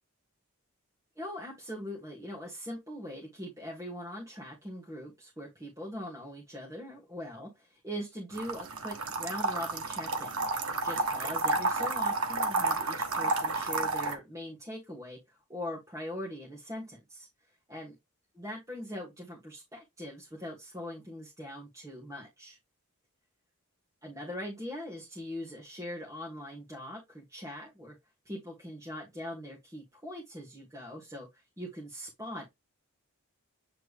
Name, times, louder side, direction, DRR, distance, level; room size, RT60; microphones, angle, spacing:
voice 1, 1.2-10.3 10.8-17.9 18.3-22.6 24.0-28.0 28.2-32.5, left 1 dB, 15° right, -3 dB, 1.5 m, -41 dB
sound 1, 8.3-14.2, right 3 dB, 75° right, 1.4 m, -31 dB
8.2 x 3.3 x 3.5 m, 0.19 s
head